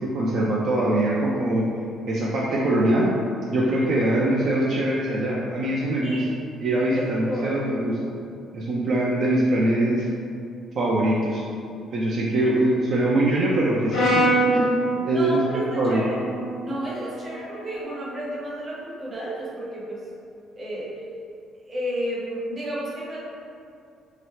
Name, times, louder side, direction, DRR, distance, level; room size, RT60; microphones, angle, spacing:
voice 1, 0.0-1.6 2.1-3.1 3.5-6.2 6.6-7.9 8.5-10.1 10.7-11.4 11.9-14.2 14.5-14.6 15.0-16.0, right 1 dB, 45° right, -6 dB, 0.4 m, -22 dB
voice 2, 3.6-3.9 6.0-6.3 6.9-7.7 12.4-12.6 14.2-14.7 15.1-16.2 16.6-20.0 20.6-21.0 21.7-23.2, equal, 25° right, -6 dB, 0.8 m, -32 dB
Brass instrument, 13.9-18.2, right 1 dB, 60° left, 1.0 m, -26 dB
3.0 x 2.8 x 3.2 m, 2.5 s
cardioid pair, 155°, 0 cm